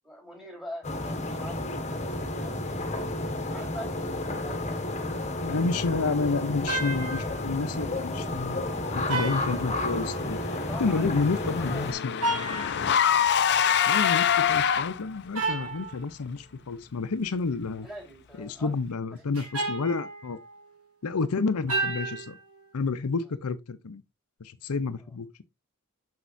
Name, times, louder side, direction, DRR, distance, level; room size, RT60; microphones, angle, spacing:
voice 1, 0.0-3.0 3.5-5.1 8.1-8.3 9.6-9.8 10.5-12.0 12.8-13.9 17.8-18.7 19.1-19.2, equal, ahead, 3.6 m, -45 dB
sound 1, 0.8-11.9, left 1 dB, 30° left, 1.2 m, -31 dB
voice 2, 5.4-8.7 8.9-10.4 10.8-12.2 13.9-17.9 18.4-20.4 21.0-22.4 22.7-24.0 24.4-25.3, left 4 dB, 85° left, 0.6 m, -30 dB
sound 2, 6.7-7.5 9.1-10.3 12.2-13.1 15.3-16.0 19.3-20.7 21.7-22.4, right 2 dB, 80° right, 3.3 m, -32 dB
Car / Engine, 10.2-15.2, left 8 dB, 50° left, 0.5 m, -25 dB
6.7 x 6.2 x 2.6 m
head